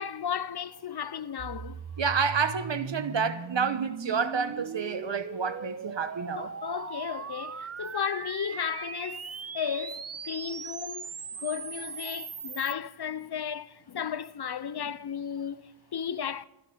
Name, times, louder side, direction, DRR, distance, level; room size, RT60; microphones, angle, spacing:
voice 1, 0.0-1.8 6.4-11.1 11.4-16.5, left 8 dB, 55° left, 0.6 m, -34 dB
sound 1, 1.4-12.7, right 6 dB, 35° right, 0.5 m, -39 dB
voice 2, 2.0-6.5, right 5 dB, 65° right, 1.1 m, -29 dB
28.5 x 12.0 x 3.9 m
wide cardioid pair, 55°, 48 cm